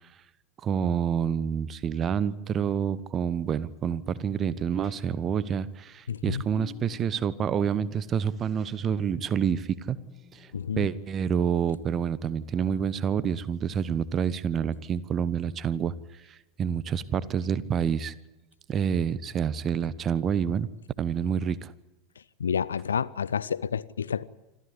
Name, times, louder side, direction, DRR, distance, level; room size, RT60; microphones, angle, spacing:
voice 1, 0.6-10.0 10.3-10.5 10.8-15.9 16.3-18.1 18.7-20.7 21.0-21.7, right 7 dB, 30° right, 1.1 m, -28 dB
sound 1, 4.0-14.3 17.4-17.8, left 10 dB, 25° left, 2.0 m, -53 dB
voice 2, 6.1-6.4 10.5-10.9 22.4-24.2, left 7 dB, 70° left, 0.7 m, -29 dB
26.5 x 14.5 x 9.9 m
figure-of-eight pair, 85°, 0 cm